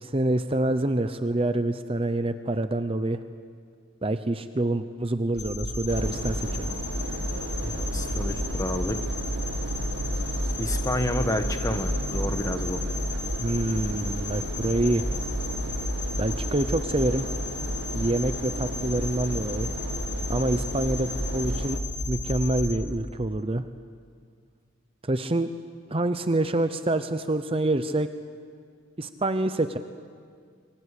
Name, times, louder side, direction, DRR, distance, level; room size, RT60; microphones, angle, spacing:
voice 1, 0.0-3.2 4.0-6.7 13.4-15.1 16.2-17.3 17.9-19.7 20.3-21.8 22.1-23.7 25.0-25.5 25.9-28.1 29.0-29.8, right 2 dB, 25° right, 10 dB, 0.7 m, -26 dB
sound 1, 5.4-22.7, left 1 dB, 35° left, 7.0 m, -32 dB
sound 2, 5.9-21.8, right 1 dB, 60° right, 1.6 m, -35 dB
voice 2, 7.6-9.0 10.6-12.8, left 1 dB, 15° left, 7 dB, 1.3 m, -30 dB
28.0 x 23.5 x 8.4 m, 2.1 s
head